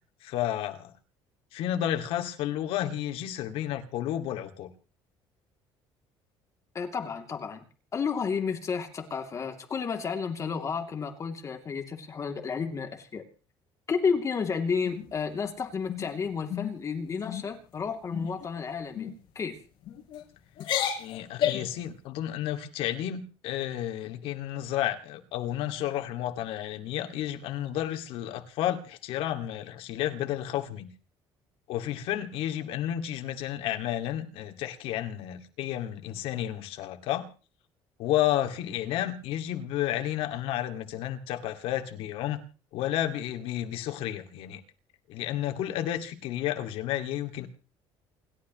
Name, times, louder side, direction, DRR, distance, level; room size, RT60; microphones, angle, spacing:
voice 1, 0.2-0.9 1.5-4.7 21.0-30.9 31.7-37.3 38.0-42.4 42.7-44.6 45.1-47.5, left 12 dB, 75° left, 2.3 m, -31 dB
voice 2, 6.7-7.6 7.9-13.2 13.9-19.1 19.3-19.6, left 5 dB, 35° left, 2.9 m, -31 dB
sound 1, 14.8-15.4 15.9-16.1 16.5-16.8 17.1-17.5 18.1-18.5 18.9-19.1 19.8-20.2 20.6-21.8, left 10 dB, 60° left, 5.2 m, -32 dB
29.0 x 12.5 x 3.1 m
cardioid pair, 125°, 10 cm